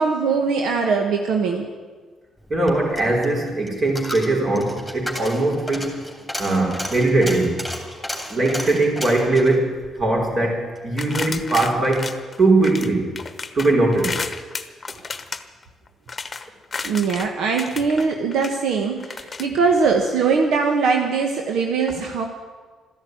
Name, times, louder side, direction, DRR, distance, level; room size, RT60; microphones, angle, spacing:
voice 1, 0.0-1.7 16.8-22.3, right 5 dB, 80° right, 3 dB, 1.3 m, -21 dB
Coin (dropping), 2.4-10.9 11.2-11.3, equal, 5° right, 3.1 m, -34 dB
voice 2, 2.5-6.0 6.4-7.6 8.3-12.1 12.4-13.2 13.5-14.2, right 2 dB, 45° right, 0 dB, 4.4 m, -20 dB
sound 1, 11.0-12.9 13.2-17.3 17.6-18.6 19.0-19.5, left 4 dB, 30° left, 1.0 m, -32 dB
13.5 x 11.0 x 9.3 m, 1.5 s
cardioid pair, 90°, 0 cm